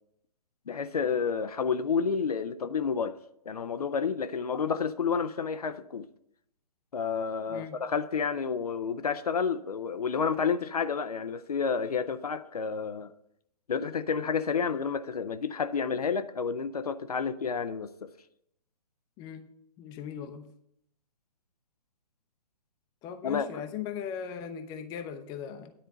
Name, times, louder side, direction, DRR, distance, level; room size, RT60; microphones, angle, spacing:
voice 1, 0.7-3.2 3.5-6.1 6.9-13.1 13.7-18.1 23.2-23.6, left 6 dB, 65° left, 0.6 m, -30 dB
voice 2, 7.5-7.8 19.2-19.4 19.8-20.5 23.0-25.7, left 8 dB, 20° left, 0.7 m, -38 dB
10.0 x 4.4 x 7.6 m
figure-of-eight pair, 125°, 21 cm